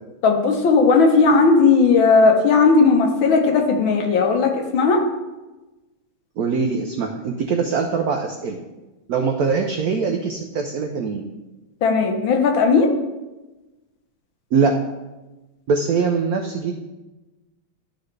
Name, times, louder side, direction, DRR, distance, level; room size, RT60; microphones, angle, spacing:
voice 1, 0.2-5.0 11.8-12.9, left 4 dB, 75° left, 3 dB, 1.7 m, -16 dB
voice 2, 6.4-8.6 9.1-11.3 14.5-14.7 15.7-16.7, right 5 dB, 90° right, 3 dB, 0.8 m, -22 dB
11.5 x 4.0 x 3.2 m, 1.1 s
omnidirectional pair, 2.2 m